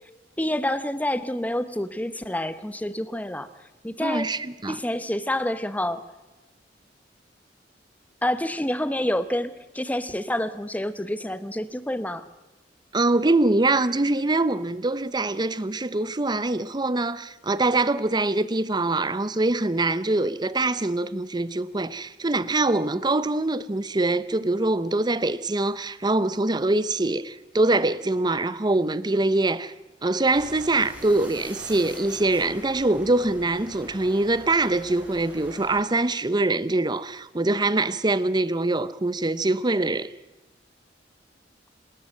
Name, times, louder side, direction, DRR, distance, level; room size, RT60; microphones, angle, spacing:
voice 1, 0.4-3.5 3.8-4.3 4.7-6.0 8.2-12.2, left 1 dB, 10° left, 0.9 m, -28 dB
voice 2, 4.0-4.8 12.9-29.7 30.0-40.1, right 2 dB, 25° right, 0.7 m, -24 dB
sound 1, 30.3-35.8, equal, 10° right, 4.9 m, -44 dB
28.0 x 13.5 x 7.7 m
head